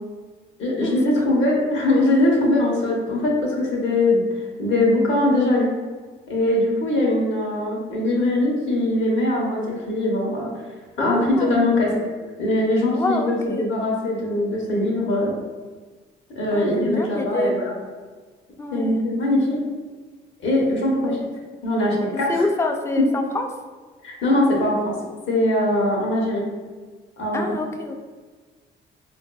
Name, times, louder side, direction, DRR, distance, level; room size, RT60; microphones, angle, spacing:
voice 1, 0.6-4.2 4.6-5.7 6.3-10.5 11.0-11.9 12.4-15.3 16.4-17.7 18.7-19.6 20.4-21.1 21.6-22.5 23.0-23.1 24.0-24.9 25.3-26.5 27.2-27.6, left 1 dB, 75° left, -2 dB, 0.9 m, -21 dB
voice 2, 11.0-11.7 12.9-13.7 16.5-17.5 18.6-19.0 19.5-19.7 21.0-21.3 22.3-23.5 27.3-28.0, left 2 dB, 15° left, 4 dB, 0.3 m, -26 dB
3.8 x 2.5 x 2.3 m, 1.4 s
cardioid pair, 90°, 20 cm